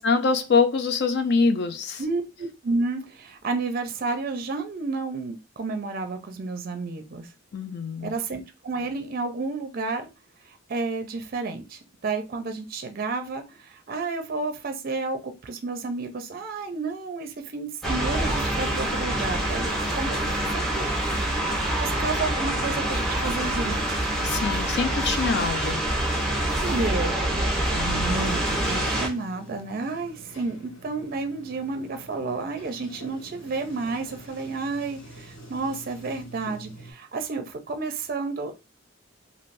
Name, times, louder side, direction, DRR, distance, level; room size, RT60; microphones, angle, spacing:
voice 1, 0.0-2.0 7.5-8.1 24.2-25.8, left 4 dB, 55° left, 0.4 m, -24 dB
voice 2, 2.0-7.3 8.0-10.1 10.4-20.2 20.5-20.9 21.7-24.1 26.6-38.5, right 3 dB, 45° right, 0.5 m, -31 dB
sound 1, 17.8-29.1, right 1 dB, ahead, 0.8 m, -26 dB
Sliding door, 27.8-36.9, right 1 dB, 70° left, 1.7 m, -44 dB
3.2 x 2.6 x 2.5 m
head